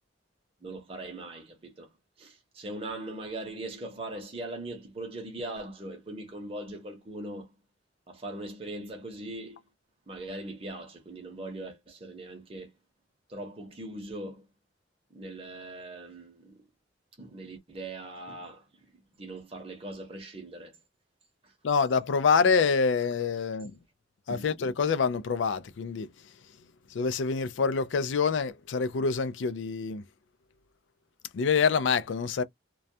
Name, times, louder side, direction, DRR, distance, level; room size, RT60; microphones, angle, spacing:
voice 1, 0.6-1.9 2.2-7.5 8.1-9.6 10.1-12.7 13.3-14.5 15.1-16.6 17.2-18.6 19.2-20.8 21.4-21.5 24.3-24.5, right 1 dB, 30° right, 0.7 m, -40 dB
voice 2, 21.6-23.7 24.3-26.1 26.9-30.0 31.3-32.4, left 5 dB, 75° left, 0.4 m, -26 dB
2.2 x 2.2 x 2.6 m
head